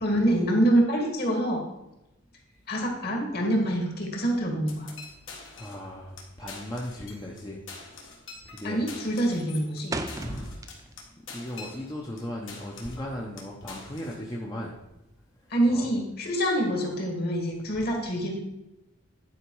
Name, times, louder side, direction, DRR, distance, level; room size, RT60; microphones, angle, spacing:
voice 1, 0.0-1.6 2.7-4.9 8.6-10.0 15.5-18.3, right 1 dB, 50° left, 1 dB, 1.9 m, -25 dB
sound 1, 4.7-5.9 6.2-6.3 6.5-7.4 7.7-12.2 12.5-13.1 13.4-14.2, left 4 dB, 70° left, 1.7 m, -45 dB
voice 2, 5.5-7.6 8.4-8.8 10.1-10.5 11.3-14.8 15.7-15.9, left 1 dB, 20° left, -2 dB, 0.8 m, -37 dB
sound 2, 7.4-7.7 8.1-8.5 8.8-11.2 11.5-12.9, right 2 dB, 15° right, 0.4 m, -37 dB
10.0 x 5.0 x 4.7 m, 0.91 s
head